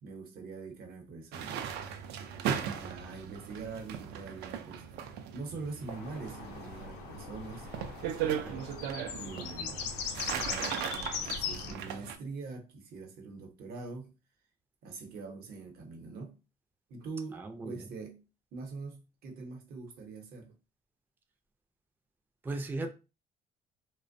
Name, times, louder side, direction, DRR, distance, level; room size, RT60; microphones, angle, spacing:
voice 1, 0.0-1.7 2.6-7.7 9.1-9.8 10.1-14.2 14.8-16.4 16.9-18.2 18.5-20.5, right 4 dB, 65° right, 0.8 m, -44 dB
sound 1, 1.3-12.2, right 8 dB, 80° right, 0.4 m, -38 dB
sound 2, 5.9-11.7, left 6 dB, 90° left, 0.5 m, -39 dB
voice 2, 8.2-8.6 17.3-17.9 22.4-22.9, right 2 dB, 10° right, 0.3 m, -38 dB
2.5 x 2.1 x 2.5 m
cardioid pair, 110°, 17 cm